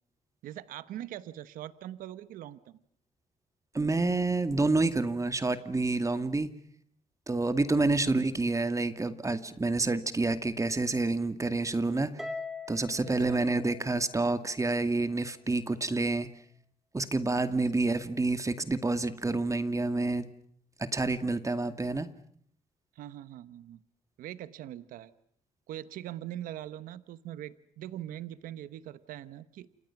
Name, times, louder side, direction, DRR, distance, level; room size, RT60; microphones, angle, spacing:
voice 1, 0.4-2.8 13.1-13.4 22.9-23.8 24.2-25.1 25.7-29.7, right 12 dB, 90° right, 14 dB, 1.0 m, -42 dB
voice 2, 3.7-6.5 7.3-12.1 12.7-16.3 16.9-20.3 20.8-22.1, right 3 dB, 20° right, 10 dB, 2.2 m, -28 dB
Harp, 12.2-14.7, left 3 dB, ahead, 4.3 m, -42 dB
29.0 x 27.5 x 6.0 m, 0.63 s
cardioid pair, 75°, 14 cm